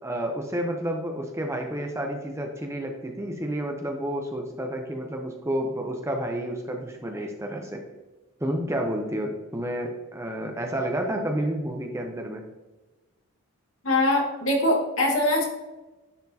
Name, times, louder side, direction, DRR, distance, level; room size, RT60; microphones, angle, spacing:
voice 1, 0.0-7.8 8.4-12.4, right 1 dB, 10° right, 3 dB, 0.6 m, -30 dB
voice 2, 13.8-15.4, left 1 dB, 65° left, -2 dB, 2.0 m, -22 dB
10.5 x 4.3 x 2.8 m, 1.1 s
head